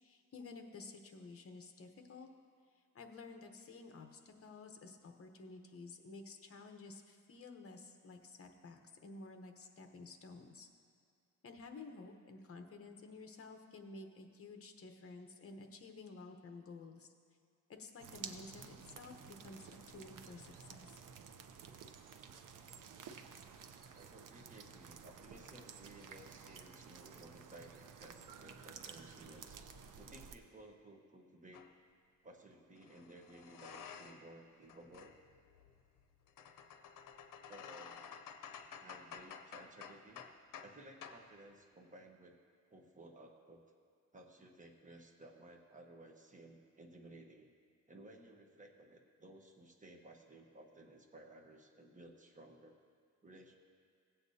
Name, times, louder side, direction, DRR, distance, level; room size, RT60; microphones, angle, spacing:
voice 1, 0.0-2.3 2.9-10.7 11.4-17.1 17.7-21.0, left 3 dB, 45° left, 5 dB, 0.9 m, -52 dB
sound 1, 18.0-30.4, right 6 dB, 75° right, 0.6 m, -53 dB
voice 2, 23.9-29.6 29.9-31.7 32.2-35.2 37.5-38.0 38.8-40.2 40.6-42.4 42.7-43.6 44.1-47.5 47.9-52.8 53.2-53.6, right 1 dB, 25° right, 2 dB, 1.0 m, -57 dB
sound 2, 31.5-31.7 32.8-34.3 34.6-40.8 41.0-41.2, left 7 dB, 90° left, 0.6 m, -52 dB
17.0 x 8.1 x 2.8 m, 2.3 s
wide cardioid pair, 125°, 32 cm